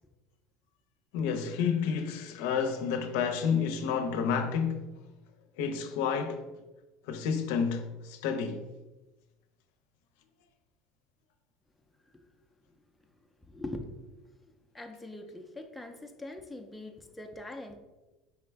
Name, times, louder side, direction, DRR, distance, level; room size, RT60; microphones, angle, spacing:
voice 1, 1.1-4.8 5.6-6.4 7.1-8.6, left 6 dB, 80° left, 0.5 m, -30 dB
voice 2, 13.5-14.0 14.4-17.8, left 2 dB, 5° left, 0.4 m, -42 dB
4.7 x 3.4 x 3.3 m
cardioid pair, 135°, 0 cm